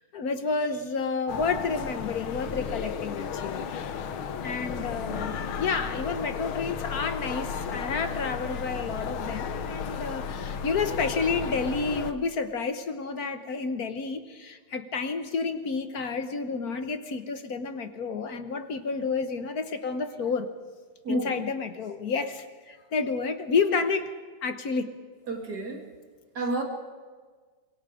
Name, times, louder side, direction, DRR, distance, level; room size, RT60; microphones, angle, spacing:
voice 1, 0.0-3.7 4.4-20.5 21.1-24.1 24.4-24.9, left 4 dB, 50° left, 9 dB, 1.5 m, -30 dB
sound 1, 1.3-12.1, left 6 dB, 75° left, 1.9 m, -34 dB
voice 2, 5.1-5.4 21.0-21.4 25.3-25.9 26.3-26.6, right 3 dB, 50° right, 2 dB, 3.1 m, -32 dB
25.5 x 23.0 x 5.1 m, 1.5 s
omnidirectional pair, 2.3 m